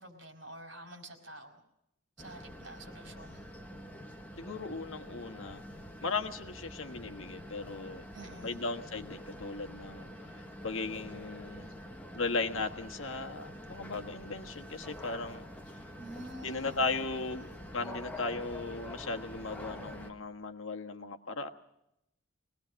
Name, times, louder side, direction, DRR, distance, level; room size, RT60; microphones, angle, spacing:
voice 1, 0.0-1.6 2.2-3.5 8.1-8.6 16.0-17.5, right 1 dB, 60° right, 3 dB, 4.8 m, -48 dB
sound 1, 2.2-20.1, equal, 10° left, 1.3 m, -46 dB
voice 2, 4.4-5.6 6.0-8.0 8.4-10.1 10.6-11.7 12.1-15.4 16.4-21.5, left 3 dB, 70° left, 4 dB, 1.4 m, -37 dB
23.0 x 19.0 x 6.4 m, 0.81 s
head